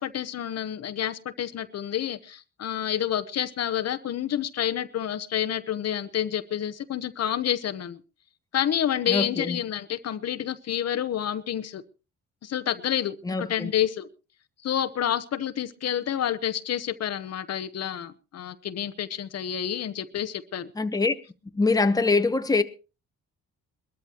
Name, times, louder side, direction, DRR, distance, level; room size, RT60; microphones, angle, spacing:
voice 1, 0.0-8.0 8.5-11.8 12.4-14.1 14.6-20.7, left 10 dB, 55° left, 0.9 m, -29 dB
voice 2, 9.1-9.6 13.2-13.7 20.7-21.1 21.5-22.6, left 3 dB, 10° left, 1.0 m, -23 dB
21.5 x 13.5 x 2.9 m
cardioid pair, 90°, 30 cm